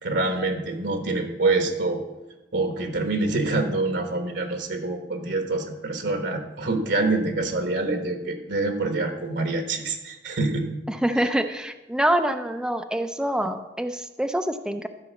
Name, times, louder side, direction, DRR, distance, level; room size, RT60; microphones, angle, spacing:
voice 1, 0.0-2.0 2.5-10.7 11.2-11.3, right 2 dB, 65° right, 5 dB, 1.3 m, -26 dB
voice 2, 10.9-14.9, right 1 dB, 5° right, 8 dB, 0.5 m, -25 dB
13.5 x 5.2 x 7.1 m, 1.0 s
head